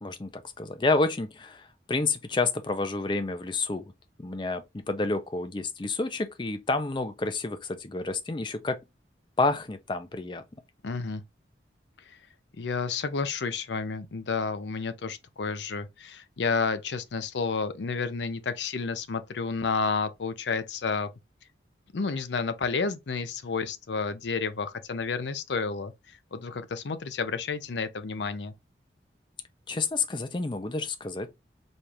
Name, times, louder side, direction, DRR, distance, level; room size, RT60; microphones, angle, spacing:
voice 1, 0.0-3.8 4.2-8.8 9.4-10.4 29.7-31.4, left 3 dB, 25° left, 0.5 m, -29 dB
voice 2, 10.8-11.2 12.1-12.2 12.6-21.1 21.9-25.9 26.3-28.5, left 4 dB, 85° left, 0.5 m, -30 dB
4.3 x 2.4 x 3.2 m
head